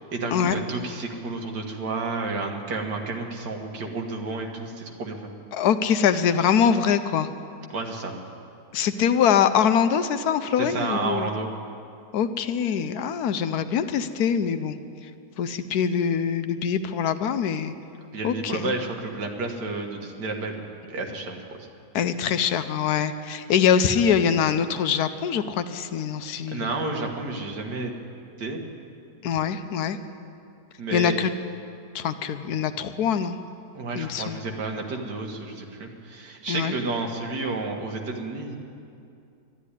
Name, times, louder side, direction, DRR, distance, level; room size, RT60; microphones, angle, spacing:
voice 1, 0.1-5.3 7.7-8.1 10.6-11.5 18.1-21.7 26.5-27.9 28.4-28.6 30.8-31.2 33.7-38.6, right 3 dB, 80° right, 2 dB, 2.1 m, -31 dB
voice 2, 5.5-7.3 8.7-11.3 12.1-14.8 15.4-17.7 18.2-18.7 21.9-26.7 29.2-30.0 30.9-31.3 31.9-33.4 34.0-34.4 36.5-36.7, left 7 dB, 70° left, 10 dB, 1.1 m, -23 dB
12.0 x 11.5 x 9.8 m, 2.5 s
omnidirectional pair, 1.8 m